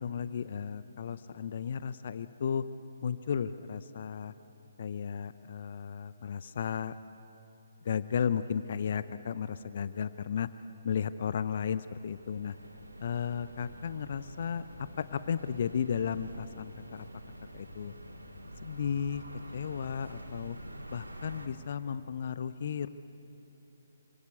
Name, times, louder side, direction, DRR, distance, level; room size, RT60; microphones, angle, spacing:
voice 1, 0.0-2.6 3.0-4.3 4.8-6.9 7.8-10.5 10.8-12.6 13.0-17.1 17.5-17.9 18.6-19.2 19.5-20.6 20.9-22.9, left 7 dB, 45° left, 14 dB, 0.7 m, -34 dB
sound 1, 11.7-21.5, equal, 80° right, 3.9 m, -47 dB
27.5 x 25.5 x 8.4 m, 2.9 s
figure-of-eight pair, 135°, 0 cm